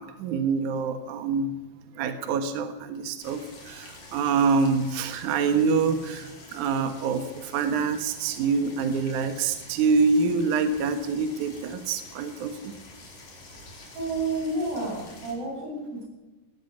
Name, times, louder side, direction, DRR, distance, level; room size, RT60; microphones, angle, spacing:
voice 1, 0.0-1.6 1.9-12.7, right 5 dB, 70° right, 8 dB, 1.9 m, -26 dB
sound 1, 3.2-15.3, left 2 dB, 45° left, 6.0 m, -48 dB
voice 2, 14.0-15.8, right 2 dB, 50° right, -2 dB, 9.7 m, -30 dB
19.5 x 13.5 x 9.7 m, 1.1 s
omnidirectional pair, 5.6 m